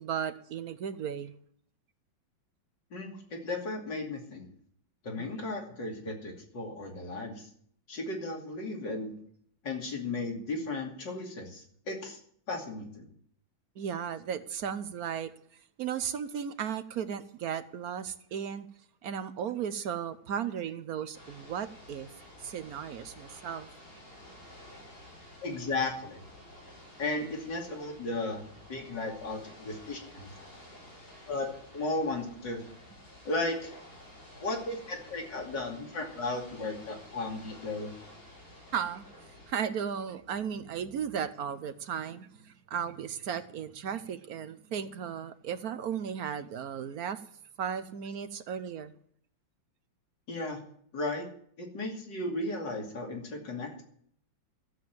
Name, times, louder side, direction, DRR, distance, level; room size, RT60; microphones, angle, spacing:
voice 1, 0.0-1.3 5.2-5.3 13.8-15.3 15.8-18.7 19.0-22.1 22.4-23.7 38.7-39.0 39.5-47.2 47.6-48.9, right 8 dB, 65° right, 12 dB, 1.0 m, -35 dB
voice 2, 2.9-4.5 5.0-7.5 7.9-9.1 9.6-12.2 12.5-13.1 25.4-26.2 27.0-28.4 28.7-30.3 31.3-32.6 33.2-33.7 34.4-37.9 50.3-50.6 50.9-51.2 51.6-53.8, left 2 dB, 65° left, 1 dB, 3.3 m, -35 dB
Ocean / Boat Water vehicle, 21.1-39.5, left 1 dB, 90° left, 8.1 m, -52 dB
14.0 x 7.6 x 7.6 m, 0.63 s
omnidirectional pair, 2.1 m